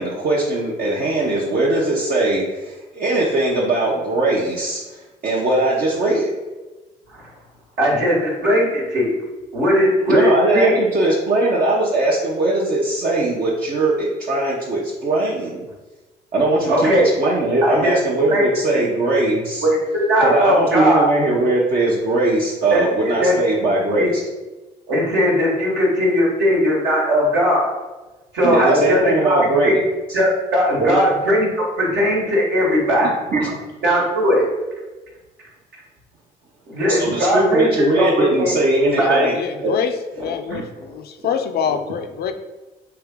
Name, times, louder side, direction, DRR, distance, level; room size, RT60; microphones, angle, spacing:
voice 1, 0.0-4.8 5.2-6.3 10.1-15.6 16.3-19.7 20.2-24.2 28.4-29.8 30.8-31.0 33.0-33.5 36.9-39.7 40.5-40.6, right 2 dB, 50° right, -5 dB, 0.8 m, -20 dB
voice 2, 7.8-9.1 9.5-10.8 16.7-17.1 17.6-17.9 18.3-18.4 18.7-18.8 19.6-21.1 22.7-23.3 24.0-24.1 24.9-27.7 28.3-29.7 30.1-33.1 33.8-34.4 36.7-37.7 38.0-38.5 39.0-39.2 40.2-40.6, equal, 65° right, -4 dB, 1.3 m, -18 dB
voice 3, 38.9-39.9 40.2-42.3, left 7 dB, 55° left, 7 dB, 0.5 m, -25 dB
3.4 x 2.8 x 3.5 m, 1.2 s
hypercardioid pair, 55°, 20 cm